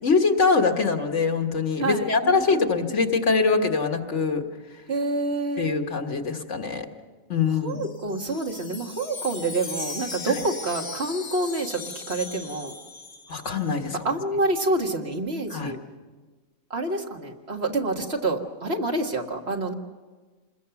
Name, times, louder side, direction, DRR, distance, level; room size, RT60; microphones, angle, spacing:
voice 1, 0.0-4.4 5.6-6.9 7.3-7.8 13.3-14.0 15.5-15.7, left 4 dB, 55° left, 5 dB, 1.8 m, -23 dB
voice 2, 1.8-3.1 4.9-5.8 7.6-12.7 14.0-15.8 16.7-19.7, right 2 dB, 45° right, 2 dB, 1.9 m, -28 dB
Wind chime, 7.6-13.8, left 3 dB, 85° left, 2.2 m, -38 dB
27.5 x 21.0 x 7.0 m, 1.3 s
omnidirectional pair, 1.5 m